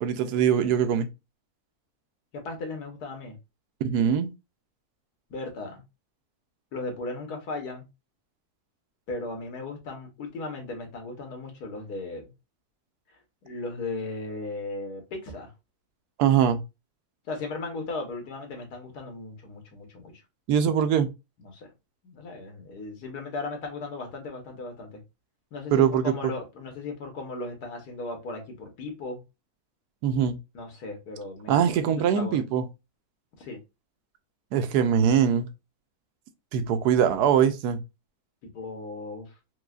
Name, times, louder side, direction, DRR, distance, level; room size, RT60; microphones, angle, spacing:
voice 1, 0.0-1.1 3.8-4.3 16.2-16.6 20.5-21.1 25.7-26.1 30.0-30.4 31.5-32.6 34.5-35.5 36.5-37.8, right 8 dB, 85° right, 1.1 m, -22 dB
voice 2, 2.3-3.4 5.3-5.8 6.7-7.8 9.1-12.3 13.4-15.5 17.3-20.1 21.4-21.7 22.0-25.0 25.5-29.2 30.5-32.4 33.4-33.6 38.5-39.3, left 3 dB, 90° left, 1.7 m, -36 dB
4.6 x 2.3 x 2.3 m
omnidirectional pair, 1.6 m